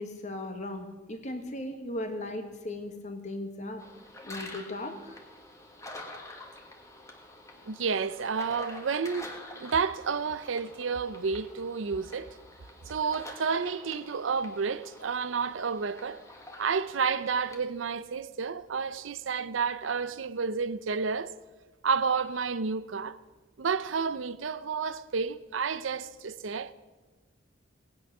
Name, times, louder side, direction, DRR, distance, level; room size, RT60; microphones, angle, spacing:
voice 1, 0.0-3.8 4.2-5.2, left 1 dB, 40° left, 1.6 m, -37 dB
sound 1, 3.8-17.6, left 1 dB, 15° left, 1.7 m, -47 dB
voice 2, 7.7-9.3 9.6-12.4 12.9-16.2 16.6-21.3 21.8-23.2 23.6-26.7, right 5 dB, 85° right, 0.6 m, -30 dB
18.0 x 9.6 x 6.1 m
head